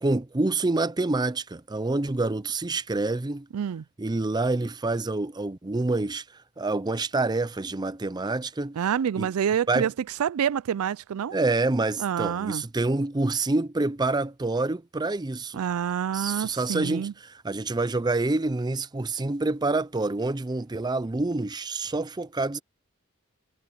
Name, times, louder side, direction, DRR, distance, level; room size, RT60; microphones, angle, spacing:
voice 1, 0.0-3.5 4.0-6.2 6.6-8.8 9.2-9.3 9.7-9.9 11.3-15.6 16.1-22.6, right 2 dB, 20° right, 0.5 m, -27 dB
voice 2, 3.5-3.8 8.8-9.9 10.2-11.4 12.0-12.6 15.5-17.1, right 8 dB, 85° right, 0.4 m, -27 dB
head